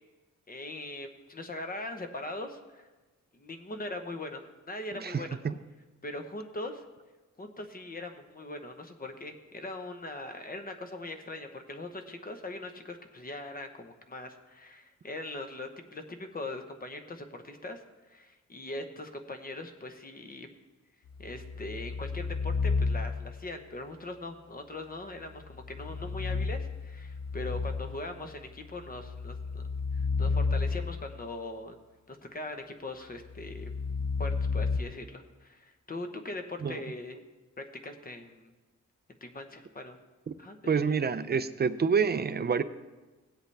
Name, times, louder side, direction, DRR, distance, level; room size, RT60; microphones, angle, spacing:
voice 1, 0.5-2.9 3.3-5.4 6.0-6.8 7.4-17.8 18.1-20.5 21.2-29.6 29.9-31.7 32.1-33.7 34.2-37.2 37.6-38.5 39.2-40.0 40.4-41.0, left 2 dB, 30° left, 6 dB, 0.9 m, -41 dB
voice 2, 5.0-5.5 36.6-36.8 40.3-40.4 40.7-42.6, right 6 dB, 35° right, 12 dB, 0.4 m, -28 dB
sound 1, 21.1-23.4 25.5-28.1 28.8-31.2 33.3-34.8, left 4 dB, 65° left, 0.8 m, -32 dB
17.5 x 8.0 x 3.3 m, 1.2 s
wide cardioid pair, 155°, 30 cm